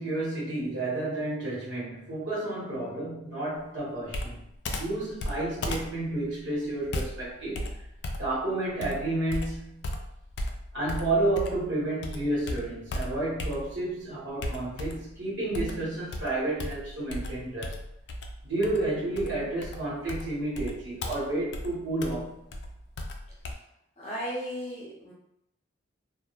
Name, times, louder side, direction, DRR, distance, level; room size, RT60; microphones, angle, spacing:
voice 1, 0.0-4.4 4.8-7.7 8.2-9.9 10.7-17.8 18.4-22.5, right 2 dB, 75° right, -8 dB, 1.1 m, -31 dB
Computer keyboard, 4.1-11.7 12.0-13.9 14.4-15.1 15.5-23.5, left 1 dB, 60° left, 0.3 m, -36 dB
voice 2, 24.0-25.1, equal, 30° left, -4 dB, 0.7 m, -35 dB
2.2 x 2.2 x 3.0 m, 0.77 s
head